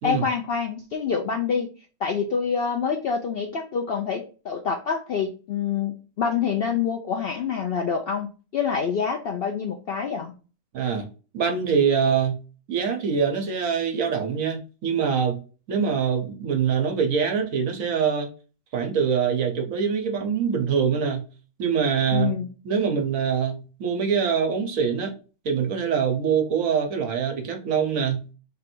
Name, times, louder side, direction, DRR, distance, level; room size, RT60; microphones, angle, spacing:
voice 1, 0.0-1.7 2.0-10.3 22.1-22.5, left 6 dB, 65° left, 0.6 m, -26 dB
voice 2, 10.7-11.1 11.3-12.4 12.7-15.4 15.7-18.3 18.7-21.2 21.6-22.4 22.6-25.1 25.4-28.2, right 6 dB, 70° right, 1.2 m, -24 dB
3.3 x 2.5 x 4.3 m
omnidirectional pair, 1.5 m